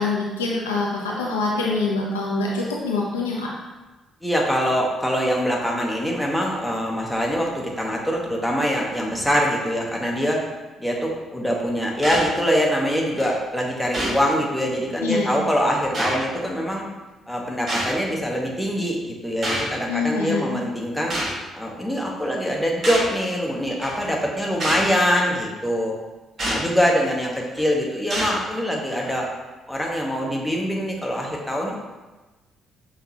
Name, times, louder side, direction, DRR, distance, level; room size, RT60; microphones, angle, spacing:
voice 1, 0.0-3.5 15.0-15.3 19.9-20.6, left 3 dB, 75° left, -3 dB, 0.5 m, -25 dB
voice 2, 4.2-10.4 10.8-16.9 17.3-21.2 21.5-26.0 26.4-29.3 29.7-31.8, equal, 5° left, -1 dB, 1.0 m, -24 dB
sound 1, 12.0-12.3 13.2-13.3 13.9-14.2 15.2-15.3 15.9-16.2 17.7-17.9 19.4-19.7 21.1-21.4 22.8-23.1 23.8-24.0 24.6-24.9 26.4-26.6 27.3-27.6 28.1-28.3 29.0-29.1, right 1 dB, 40° right, 1.2 m, -26 dB
5.7 x 2.9 x 2.9 m, 1.2 s
figure-of-eight pair, 45°, 0 cm